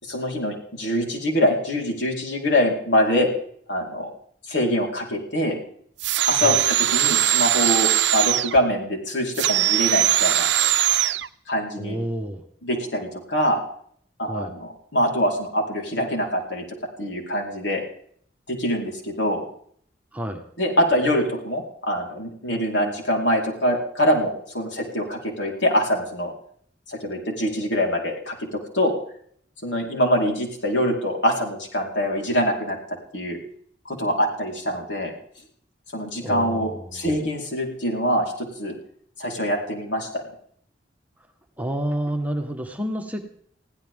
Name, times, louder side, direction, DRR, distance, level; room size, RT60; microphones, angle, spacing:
voice 1, 0.0-3.3 3.7-4.1 4.5-5.6 6.3-10.5 11.5-12.0 12.6-13.6 14.2-16.6 17.0-17.8 18.5-19.4 20.6-26.3 26.9-28.5 28.7-29.0 29.6-32.8 33.1-33.4 33.9-35.1 35.9-38.7 39.2-40.1, equal, 80° left, 0 dB, 4.6 m, -24 dB
sound 1, 6.0-8.6 9.3-11.3, right 12 dB, 75° right, 0.6 m, -20 dB
voice 2, 11.8-12.4 14.3-14.5 20.1-20.4 36.2-37.0 41.6-43.2, right 1 dB, 10° right, 4 dB, 1.6 m, -29 dB
21.5 x 16.0 x 3.8 m, 0.63 s
head